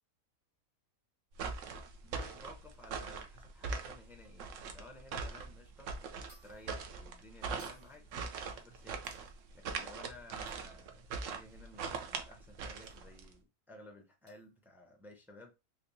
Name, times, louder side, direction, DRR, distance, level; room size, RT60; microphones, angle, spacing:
sound 1, 1.3-13.3, right 5 dB, 65° right, 0.9 m, -41 dB
voice 1, 2.0-8.1 8.4-9.0 9.5-15.5, left 1 dB, 5° right, 0.3 m, -56 dB
sound 2, 6.3-6.7 7.6-8.2 9.0-9.5 10.5-10.7 12.8-13.0 14.3-14.5, equal, 25° right, 0.9 m, -61 dB
3.4 x 3.0 x 2.7 m
omnidirectional pair, 1.5 m